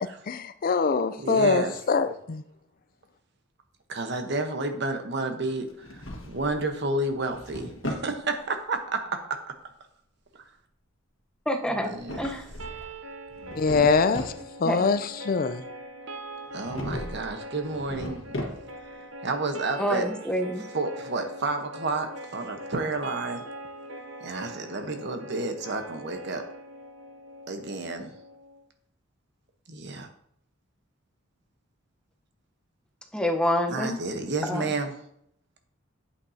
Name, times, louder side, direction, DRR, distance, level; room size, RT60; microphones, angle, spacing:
voice 1, 0.0-2.4 13.6-14.3 14.6-15.6, left 4 dB, 45° left, 0.4 m, -24 dB
voice 2, 1.2-1.7 3.9-9.2 11.7-12.2 16.5-18.3 19.2-20.0 20.7-23.4 24.2-26.4 27.5-28.1 29.7-30.1 33.7-34.9, right 2 dB, 60° right, 1.0 m, -30 dB
Drawer open or close, 5.7-6.7 7.1-8.1 11.8-12.9 13.3-14.4 16.6-17.3 17.6-18.9, left 1 dB, 75° left, 1.5 m, -36 dB
voice 3, 11.5-12.5 14.6-14.9 19.8-20.7 33.1-34.0 34.4-34.7, equal, 5° left, 0.8 m, -27 dB
sound 1, 12.6-28.6, right 1 dB, 80° right, 0.8 m, -42 dB
8.7 x 8.3 x 2.8 m
head